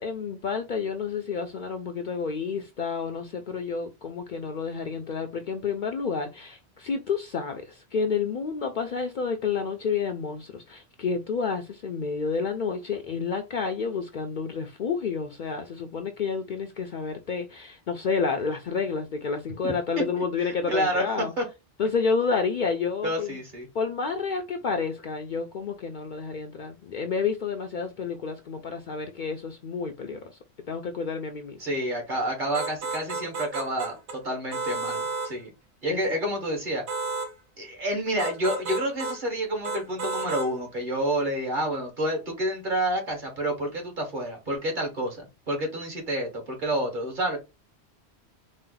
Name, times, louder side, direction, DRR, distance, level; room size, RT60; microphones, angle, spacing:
voice 1, 0.0-21.3 21.8-23.4 23.7-30.3 30.7-31.6 35.9-36.2, left 5 dB, 55° left, 0.6 m, -30 dB
voice 2, 19.6-20.0 20.7-21.0 21.4-21.5 23.0-23.7 31.6-35.5 35.8-36.8 37.6-47.4, right 1 dB, 50° right, 1.6 m, -29 dB
sound 1, 32.5-34.2 34.5-35.3 36.9-37.3 38.2-39.2 39.6-40.5, right 3 dB, 70° right, 1.0 m, -32 dB
4.2 x 2.0 x 3.8 m
omnidirectional pair, 1.1 m